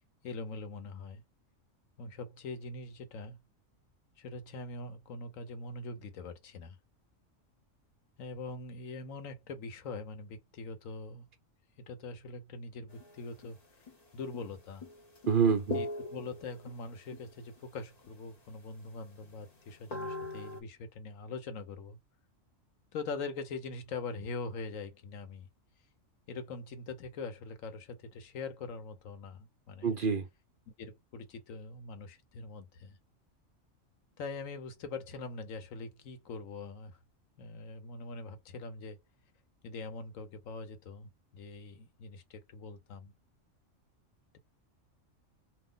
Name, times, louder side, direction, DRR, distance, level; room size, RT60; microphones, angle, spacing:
voice 1, 0.2-1.2 2.0-3.4 4.2-6.8 8.2-11.2 11.9-13.6 14.1-14.9 15.7-22.0 22.9-25.5 26.3-29.9 30.8-33.0 34.2-37.0 37.4-39.0 39.6-43.1, left 3 dB, 85° left, 1.2 m, -43 dB
sound 1, 12.9-13.5 13.9-14.0 14.3-14.6 14.8-16.7 17.1-17.6 18.0-18.1 18.5-18.6 19.2-20.6, left 2 dB, 35° left, 0.8 m, -41 dB
voice 2, 15.3-15.8 29.8-30.3, right 5 dB, 55° right, 0.6 m, -27 dB
2.6 x 2.1 x 3.7 m
omnidirectional pair, 1.3 m